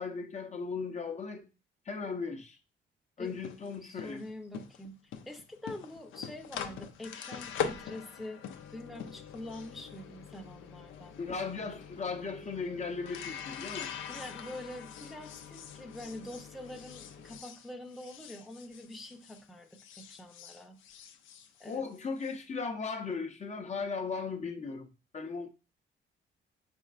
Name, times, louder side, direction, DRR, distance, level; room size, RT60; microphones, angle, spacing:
voice 1, 0.0-1.4 1.9-2.6 3.2-4.2 11.2-13.9 21.6-25.5, left 4 dB, 35° left, 0.6 m, -37 dB
sound 1, 3.3-19.5 19.7-22.3, left 8 dB, 80° left, 0.6 m, -43 dB
voice 2, 3.8-8.4 8.7-11.2 14.1-20.8 21.6-21.8, left 1 dB, ahead, 0.7 m, -45 dB
5.0 x 4.3 x 2.4 m
cardioid pair, 90°, 20 cm